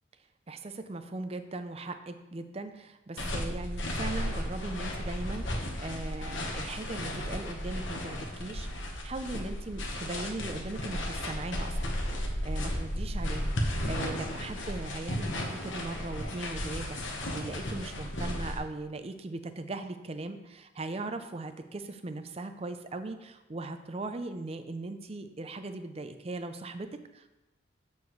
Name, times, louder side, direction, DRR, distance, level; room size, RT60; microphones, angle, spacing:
voice 1, 0.5-11.8 12.1-27.3, right 2 dB, 30° right, 9 dB, 0.5 m, -39 dB
sound 1, 3.2-18.6, equal, 70° left, 1.2 m, -34 dB
8.0 x 7.0 x 3.2 m, 1.0 s
head